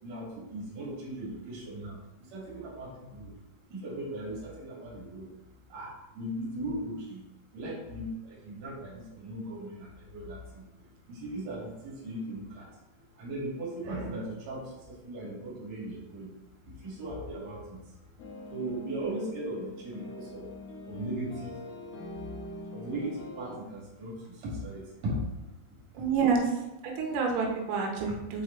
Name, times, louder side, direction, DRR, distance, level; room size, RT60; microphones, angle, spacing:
voice 1, 0.0-2.0 2.3-3.3 3.7-5.3 5.7-5.9 6.1-7.2 7.5-10.6 11.1-12.6 13.2-16.3 16.8-17.8 18.5-20.4 20.9-21.5 22.7-25.2 26.0-26.1, right 1 dB, 45° right, -5 dB, 2.9 m, -38 dB
sound 1, 18.2-23.6, left 2 dB, 75° left, 1.5 m, -43 dB
voice 2, 25.9-26.5 26.8-28.4, right 5 dB, 90° right, 1 dB, 3.3 m, -28 dB
8.1 x 4.8 x 3.3 m, 0.97 s
omnidirectional pair, 4.9 m